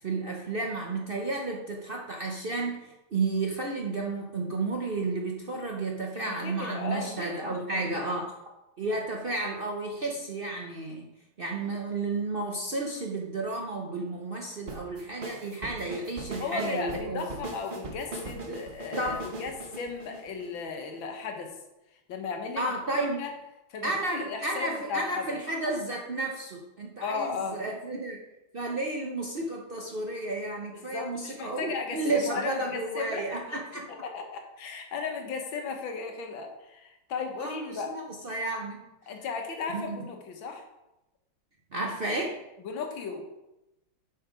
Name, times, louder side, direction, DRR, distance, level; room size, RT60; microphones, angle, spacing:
voice 1, 0.0-8.3 8.8-11.1 11.4-17.3 18.5-18.6 19.0-19.3 22.6-23.2 23.8-28.2 28.5-33.9 37.4-38.8 39.7-40.0 41.7-42.4, right 2 dB, 75° right, 0 dB, 0.5 m, -32 dB
voice 2, 6.1-8.0 16.4-21.5 22.1-22.6 23.2-23.3 23.7-25.2 27.0-27.6 30.7-33.3 34.0-37.9 39.1-40.6 42.6-43.3, left 5 dB, 70° left, 4 dB, 1.8 m, -36 dB
sound 1, 14.7-21.0, right 2 dB, 35° right, 0.8 m, -40 dB
7.3 x 5.8 x 5.1 m, 0.95 s
omnidirectional pair, 2.2 m